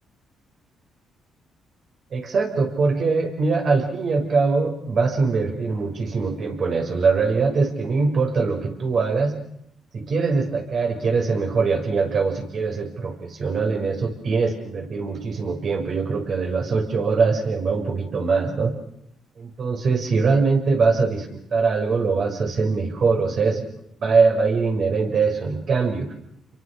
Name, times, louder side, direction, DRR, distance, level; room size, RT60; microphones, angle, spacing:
voice 1, 2.1-9.3 9.9-18.7 19.4-23.7 24.0-26.1, right 4 dB, 55° right, 3 dB, 6.5 m, -22 dB
29.5 x 23.5 x 6.8 m, 0.75 s
cardioid pair, 90°, 0 cm